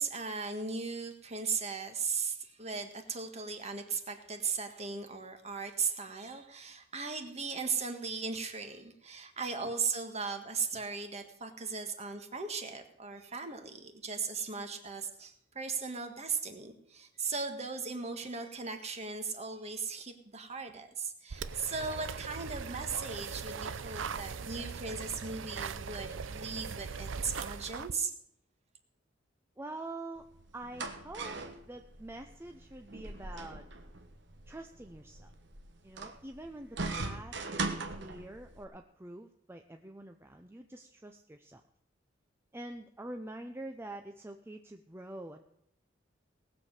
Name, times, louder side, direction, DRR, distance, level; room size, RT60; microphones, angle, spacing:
voice 1, 0.0-28.1, right 5 dB, 35° right, 6 dB, 1.6 m, -37 dB
sound 1, 21.3-27.9, right 5 dB, 90° right, 0.6 m, -40 dB
voice 2, 29.6-33.7 34.5-35.3 35.8-41.6 42.5-45.4, right 1 dB, 15° right, 5 dB, 0.6 m, -46 dB
sound 2, 30.2-38.6, right 3 dB, 65° right, 1.3 m, -41 dB
18.5 x 7.4 x 6.6 m, 0.73 s
head